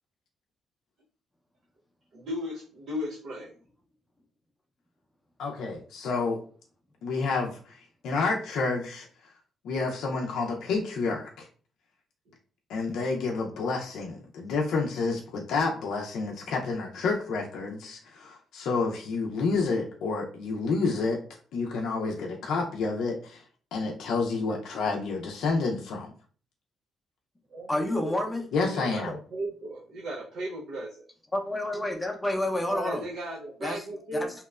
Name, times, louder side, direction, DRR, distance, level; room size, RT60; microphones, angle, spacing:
voice 1, 2.1-3.5 27.5-28.3 28.6-31.1 32.7-34.3, equal, 80° right, -4 dB, 0.6 m, -36 dB
voice 2, 5.4-6.4 7.0-7.8 8.0-9.1 9.6-11.5 12.7-21.2 21.5-23.4 23.7-26.1 28.5-29.1, left 4 dB, 75° left, 0 dB, 0.4 m, -29 dB
voice 3, 27.7-28.5 31.3-33.0 33.6-33.8 34.1-34.3, left 1 dB, 15° left, 2 dB, 0.6 m, -29 dB
2.8 x 2.1 x 2.3 m, 0.41 s
cardioid pair, 90°, 0 cm